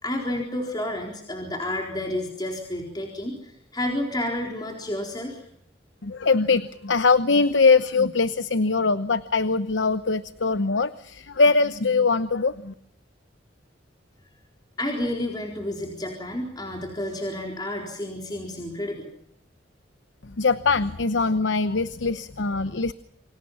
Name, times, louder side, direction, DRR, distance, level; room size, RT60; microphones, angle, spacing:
voice 1, 0.0-5.4 14.8-19.1, left 1 dB, 20° left, 1 dB, 4.2 m, -30 dB
voice 2, 6.0-12.7 20.2-22.9, left 4 dB, 80° left, 13 dB, 0.9 m, -22 dB
28.0 x 25.0 x 5.7 m, 0.72 s
head